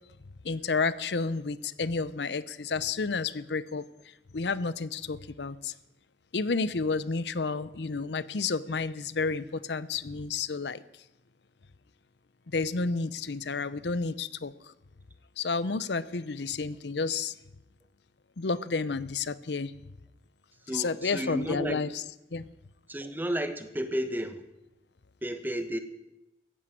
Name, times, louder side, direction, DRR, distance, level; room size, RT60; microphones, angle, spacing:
voice 1, 0.4-3.8 4.3-5.7 6.3-10.8 12.5-14.5 15.4-17.3 18.4-19.7 20.7-22.0 22.3-22.5, left 4 dB, 75° left, 16 dB, 0.7 m, -31 dB
voice 2, 20.6-21.8 22.9-24.4 25.2-25.8, equal, 10° right, 9 dB, 1.1 m, -32 dB
15.0 x 10.5 x 9.2 m, 0.93 s
head